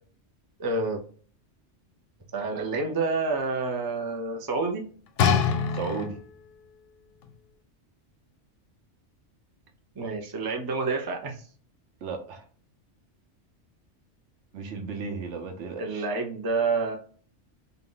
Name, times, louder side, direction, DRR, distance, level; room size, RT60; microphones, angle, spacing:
voice 1, 0.6-1.0 2.3-4.8 10.0-11.5 15.8-17.0, right 3 dB, 30° right, 2 dB, 0.4 m, -28 dB
sound 1, 5.2-6.5 7.2-7.3, left 6 dB, 90° left, 0.9 m, -24 dB
voice 2, 5.7-6.2 12.0-12.4 14.5-16.1, right 4 dB, 70° right, 5 dB, 1.1 m, -34 dB
3.8 x 2.4 x 3.7 m, 0.43 s
omnidirectional pair, 1.2 m